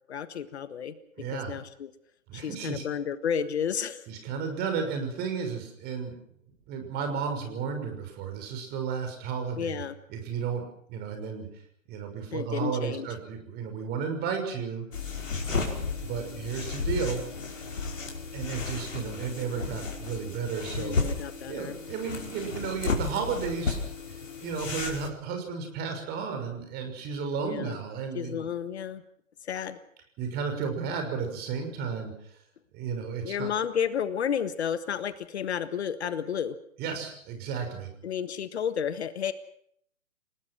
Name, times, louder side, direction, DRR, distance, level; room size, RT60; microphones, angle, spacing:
voice 1, 0.1-0.9 1.3-1.9 2.3-4.0 9.6-10.0 12.3-13.1 20.8-21.8 27.4-27.8 28.1-29.0 29.4-29.8 33.2-36.6 38.0-39.3, left 8 dB, 55° left, 12 dB, 1.6 m, -31 dB
voice 2, 1.2-1.6 2.3-2.8 4.1-6.1 6.7-9.8 10.1-10.6 10.9-11.5 11.9-14.9 15.5-17.2 18.3-21.0 21.5-23.8 24.4-28.5 30.2-32.1 32.7-33.5 36.8-37.9, right 6 dB, 25° right, 5 dB, 6.0 m, -33 dB
sound 1, 14.9-25.1, left 4 dB, 70° left, 5.5 m, -33 dB
29.5 x 18.5 x 6.2 m, 0.69 s
figure-of-eight pair, 130°, 39 cm